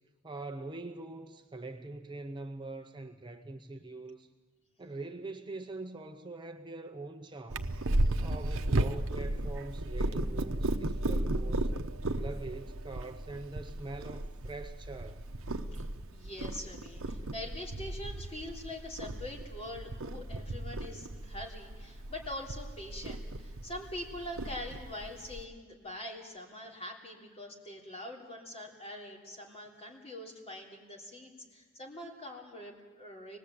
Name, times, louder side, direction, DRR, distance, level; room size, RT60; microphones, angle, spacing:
voice 1, 0.2-4.3 4.8-7.9 8.2-11.7 12.1-15.2, right 2 dB, 20° right, 6 dB, 0.7 m, -43 dB
Purr, 7.5-25.4, right 1 dB, 65° right, 0.9 m, -35 dB
voice 2, 15.8-33.4, left 1 dB, 30° left, -1 dB, 3.5 m, -44 dB
25.0 x 19.5 x 8.5 m, 1.4 s
head